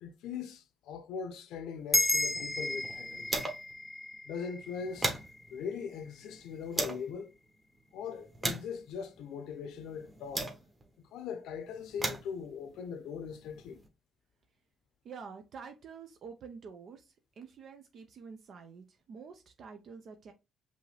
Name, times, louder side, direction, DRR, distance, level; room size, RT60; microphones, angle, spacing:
voice 1, 0.0-3.4 4.2-5.2 5.5-7.3 7.9-10.5 11.0-13.8, left 6 dB, 90° left, 0.7 m, -40 dB
sound 1, 1.9-6.6, left 1 dB, 10° left, 0.4 m, -34 dB
sound 2, 2.0-3.8 4.1-4.2 4.6-7.1 7.7-10.9 11.7-13.9, right 2 dB, 25° right, 1.2 m, -39 dB
voice 2, 15.0-20.3, right 5 dB, 65° right, 0.6 m, -48 dB
5.3 x 2.7 x 3.2 m
cardioid pair, 90°, 0 cm